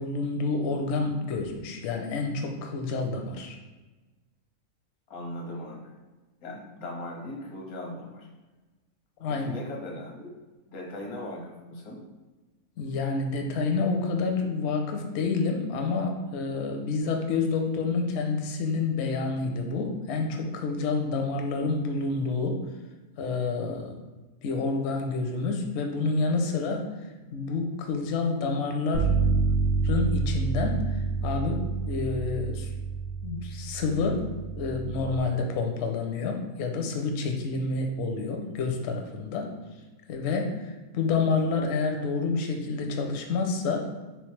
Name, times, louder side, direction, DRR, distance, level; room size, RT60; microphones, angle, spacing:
voice 1, 0.0-3.6 9.2-9.5 12.8-22.6 23.2-24.0 24.4-29.1 29.8-32.7 33.2-34.3 34.6-39.5 40.1-43.9, left 4 dB, 65° left, 3 dB, 0.7 m, -28 dB
voice 2, 5.1-5.9 6.4-8.3 9.2-10.3 10.7-12.0, left 1 dB, 90° left, -1 dB, 1.3 m, -39 dB
Bass guitar, 28.9-35.2, right 4 dB, 70° right, 0.9 m, -28 dB
3.6 x 3.1 x 3.1 m, 1.2 s
omnidirectional pair, 1.5 m